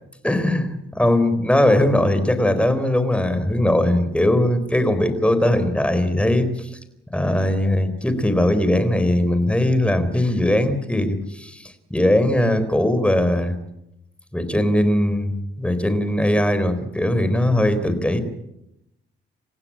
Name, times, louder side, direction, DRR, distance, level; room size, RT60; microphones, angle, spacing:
voice 1, 0.2-0.7 1.0-6.8 7.1-13.5 14.3-18.2, left 1 dB, 5° left, 11 dB, 4.1 m, -20 dB
29.0 x 15.5 x 8.8 m, 0.86 s
cardioid pair, 90°, 20 cm